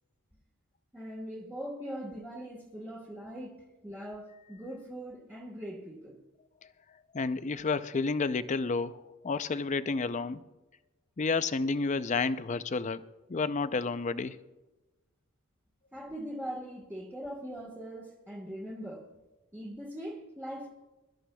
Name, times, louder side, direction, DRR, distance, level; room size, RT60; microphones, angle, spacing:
voice 1, 0.9-3.6 3.8-6.2 15.9-19.1 19.5-20.7, equal, 10° right, -3 dB, 1.3 m, -41 dB
voice 2, 7.1-9.0 9.2-10.4 11.2-13.0 13.3-14.4, left 4 dB, 35° left, 13 dB, 0.4 m, -30 dB
23.0 x 13.0 x 2.3 m, 1.1 s
head